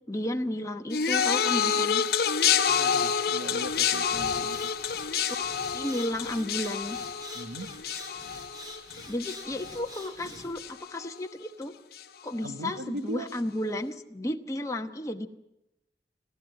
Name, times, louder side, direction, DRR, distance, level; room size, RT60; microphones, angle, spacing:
voice 1, 0.1-2.1 5.7-7.0 9.1-11.7 12.2-15.3, left 1 dB, 15° left, 4 dB, 1.0 m, -33 dB
sound 1, 0.9-10.3 10.6-11.1 11.9-12.0, left 7 dB, 55° left, 1.0 m, -28 dB
voice 2, 2.7-4.7 7.3-7.7 12.4-13.3, right 1 dB, 75° right, 9 dB, 1.4 m, -39 dB
sound 2, 3.6-10.7, equal, 20° right, 3.9 m, -46 dB
29.0 x 12.0 x 9.3 m, 0.89 s
head